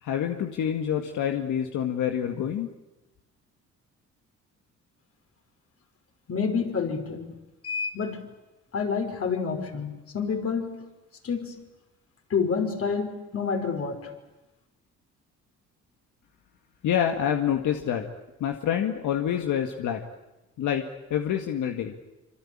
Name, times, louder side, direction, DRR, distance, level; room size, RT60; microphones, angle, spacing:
voice 1, 0.0-2.7 16.8-18.0 18.4-20.0 20.6-20.8 21.1-21.9, left 9 dB, 80° left, 4 dB, 2.0 m, -27 dB
voice 2, 6.3-7.3 7.6-8.3 8.7-10.8 11.2-11.6 12.3-14.0, left 5 dB, 50° left, 5 dB, 5.5 m, -28 dB
26.0 x 25.5 x 8.8 m, 0.98 s
cardioid pair, 90°, 30 cm